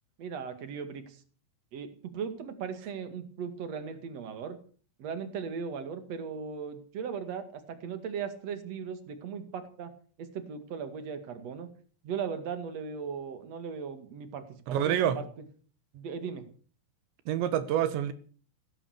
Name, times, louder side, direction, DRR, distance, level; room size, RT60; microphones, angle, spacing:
voice 1, 0.2-1.2 1.7-4.6 5.0-9.9 10.2-11.7 12.0-15.2 15.9-16.4, right 6 dB, 45° right, 2.7 m, -38 dB
voice 2, 14.7-15.2 17.3-18.1, right 10 dB, 85° right, 3.8 m, -27 dB
16.5 x 13.0 x 6.6 m
omnidirectional pair, 5.0 m